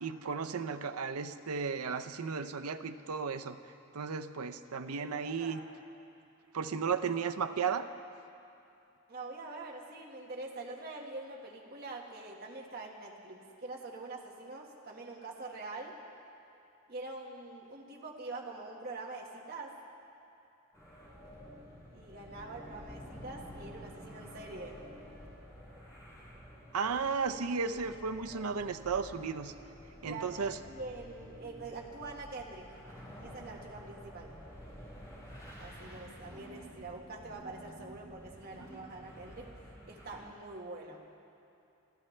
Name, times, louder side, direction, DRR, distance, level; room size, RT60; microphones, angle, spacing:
voice 1, 0.0-3.6 3.9-5.6 6.5-7.8 26.7-29.5 30.0-30.6, right 5 dB, 90° right, 9 dB, 0.6 m, -34 dB
voice 2, 5.0-5.7 9.1-16.0 16.9-19.7 21.9-24.8 30.0-30.3 30.6-32.7 33.2-34.4 35.6-39.5 39.9-41.0, right 3 dB, 45° right, -1 dB, 1.7 m, -45 dB
sound 1, 20.7-40.2, equal, 15° left, 4.2 m, -51 dB
27.0 x 14.5 x 3.3 m, 2.7 s
head